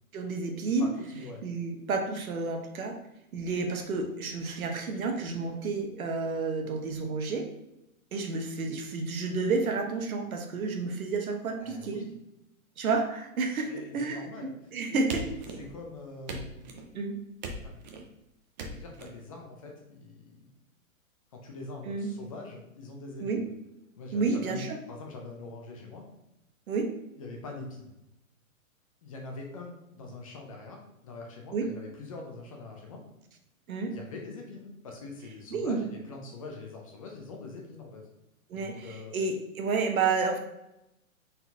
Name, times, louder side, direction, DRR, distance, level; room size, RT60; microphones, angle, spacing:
voice 1, 0.1-0.9 1.4-3.0 3.3-7.5 8.1-12.0 12.8-14.3 14.7-15.2 16.9-17.1 21.9-22.1 23.2-23.4 24.1-24.8 26.7-27.0 31.5-31.7 33.7-34.0 35.5-35.8 38.5-40.4, right 4 dB, 80° right, 4 dB, 1.0 m, -30 dB
voice 2, 0.8-1.4 11.6-12.1 13.6-14.5 14.9-16.7 17.6-17.8 18.7-20.5 21.3-23.5 24.0-26.0 27.2-27.9 29.0-33.0 33.9-38.1 38.5-39.2, left 3 dB, 25° left, 1 dB, 0.5 m, -44 dB
sound 1, 15.1-15.9 16.3-16.9 17.4-18.1 18.6-19.1, right 2 dB, 35° right, 0.5 m, -39 dB
4.2 x 3.9 x 2.8 m, 0.88 s
hypercardioid pair, 150°, 42 cm